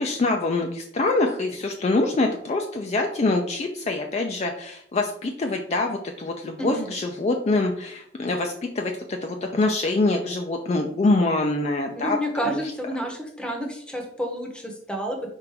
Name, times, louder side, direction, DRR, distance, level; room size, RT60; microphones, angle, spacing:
voice 1, 0.0-12.2 12.4-12.6, left 2 dB, 35° left, 3 dB, 0.3 m, -25 dB
voice 2, 6.6-6.9 12.0-15.3, equal, 5° left, 2 dB, 0.7 m, -30 dB
4.6 x 2.5 x 4.6 m, 0.68 s
head